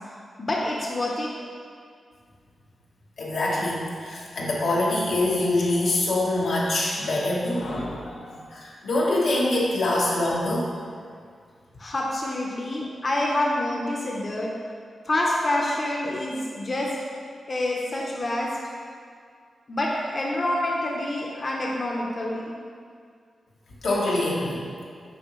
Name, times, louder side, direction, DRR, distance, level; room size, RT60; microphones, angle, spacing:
voice 1, 0.4-1.3 11.8-14.5 15.1-16.9 17.5-18.5 19.7-22.5, left 1 dB, 40° left, -2 dB, 0.7 m, -27 dB
voice 2, 3.2-3.8 4.0-10.7 23.8-24.6, left 2 dB, 85° left, -5 dB, 1.3 m, -24 dB
7.1 x 4.8 x 3.1 m, 2.1 s
cardioid pair, 90°, 0 cm